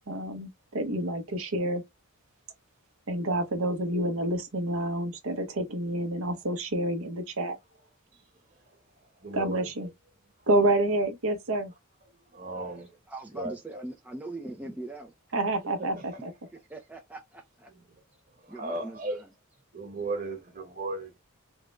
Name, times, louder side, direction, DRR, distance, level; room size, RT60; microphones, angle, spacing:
voice 1, 0.1-1.8 3.1-7.6 9.3-9.9 10.5-11.7 15.3-16.3, right 1 dB, 65° right, 0.8 m, -28 dB
voice 2, 9.2-9.9 12.3-12.9 13.3-13.8 15.9-16.0 17.7-18.0 18.4-19.2 19.7-21.2, right 2 dB, 40° right, 1.2 m, -36 dB
voice 3, 13.1-15.1 16.7-17.7 18.5-19.3, right 2 dB, 5° right, 0.4 m, -41 dB
3.6 x 2.1 x 3.0 m
head